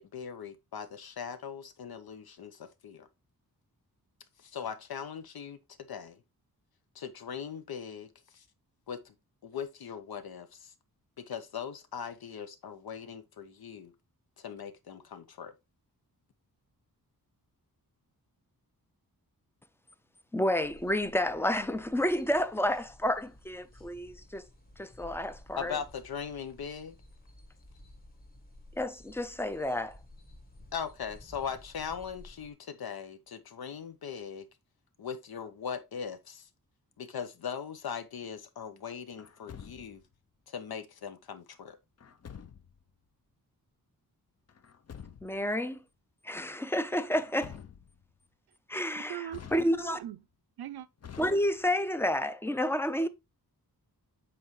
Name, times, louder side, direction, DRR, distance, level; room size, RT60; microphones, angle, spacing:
voice 1, 0.0-3.1 4.4-6.2 6.9-8.4 8.9-9.1 9.4-10.7 11.2-13.9 14.4-15.5 25.6-27.0 30.7-34.5 35.0-36.5 37.0-40.0 40.5-41.8, left 7 dB, 80° left, 0.9 m, -40 dB
voice 2, 20.3-24.5 24.8-25.8 28.8-30.0 45.2-45.8 46.2-47.6 48.7-50.0 51.2-53.1, left 1 dB, 5° left, 0.4 m, -30 dB
sound 1, 20.6-32.5, left 1 dB, 25° left, 1.4 m, -54 dB
Truck, 39.2-40.1 42.0-42.8 44.5-45.5 47.1-48.1 49.3-50.1 51.0-51.9, left 8 dB, 45° left, 0.6 m, -48 dB
voice 3, 49.1-50.2 50.6-50.9, right 12 dB, 85° right, 0.6 m, -39 dB
7.8 x 4.2 x 3.0 m
wide cardioid pair, 160°, 36 cm